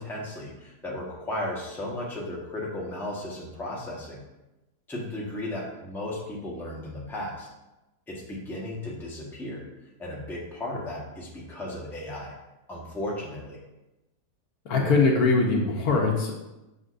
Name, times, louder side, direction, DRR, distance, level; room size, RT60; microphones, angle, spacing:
voice 1, 0.0-4.2 4.9-7.5 8.1-9.6 10.0-12.3 12.7-13.6, left 1 dB, ahead, -4 dB, 1.0 m, -35 dB
voice 2, 14.6-16.3, left 3 dB, 65° left, 0 dB, 1.3 m, -22 dB
6.5 x 6.1 x 2.5 m, 1.0 s
omnidirectional pair, 1.8 m